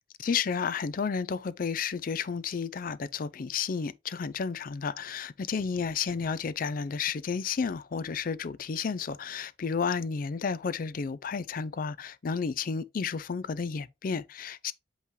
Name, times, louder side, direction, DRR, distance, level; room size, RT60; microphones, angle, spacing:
voice 1, 0.2-14.7, left 5 dB, 50° left, 0.4 m, -32 dB
8.2 x 3.2 x 3.6 m
head